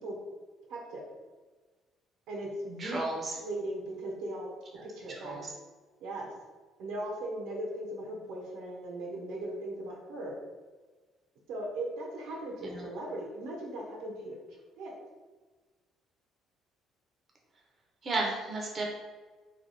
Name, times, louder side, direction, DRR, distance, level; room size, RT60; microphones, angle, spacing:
voice 1, 0.7-1.0 2.3-3.0 3.4-4.5 4.8-5.5 6.0-6.3 6.8-10.3 11.5-15.0, right 1 dB, 85° right, -2 dB, 1.0 m, -38 dB
voice 2, 2.8-3.3 5.1-5.5 12.6-12.8 18.0-18.9, right 2 dB, 35° right, -1 dB, 0.7 m, -33 dB
3.3 x 2.3 x 4.1 m, 1.3 s
cardioid pair, 130°, 0 cm